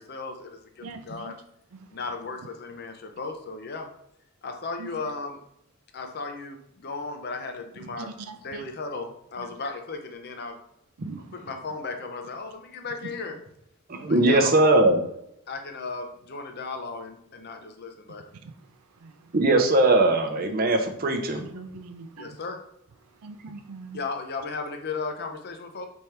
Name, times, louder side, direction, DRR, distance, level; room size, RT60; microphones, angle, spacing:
voice 1, 0.0-1.4 1.9-3.9 4.4-5.4 5.9-8.1 8.4-10.6 11.3-13.4 14.0-14.8 15.5-18.2 22.2-22.6 23.9-25.9, left 4 dB, 45° left, 5 dB, 0.6 m, -35 dB
voice 2, 0.8-1.3 4.8-5.0 8.0-8.6 9.4-9.5 11.0-11.2 18.4-18.5 19.0-19.1 21.4-22.4 23.2-24.0, right 4 dB, 90° right, 8 dB, 0.4 m, -41 dB
voice 3, 13.9-15.0 19.3-21.4, right 2 dB, 40° right, 5 dB, 0.6 m, -20 dB
4.2 x 3.5 x 3.3 m, 0.77 s
head